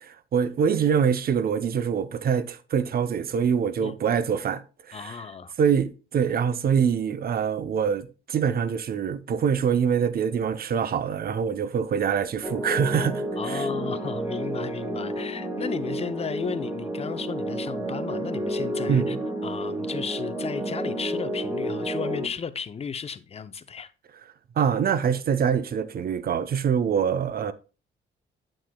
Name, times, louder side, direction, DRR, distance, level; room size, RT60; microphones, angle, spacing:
voice 1, 0.0-4.6 4.9-5.2 5.6-13.7 18.9-19.2 24.6-27.5, right 7 dB, 50° right, 0.7 m, -24 dB
voice 2, 4.9-5.5 13.4-19.2 19.4-23.9, left 6 dB, 30° left, 0.6 m, -34 dB
sound 1, 12.4-22.3, right 1 dB, 10° right, 1.4 m, -30 dB
8.8 x 7.5 x 2.2 m
cardioid pair, 90°, 20 cm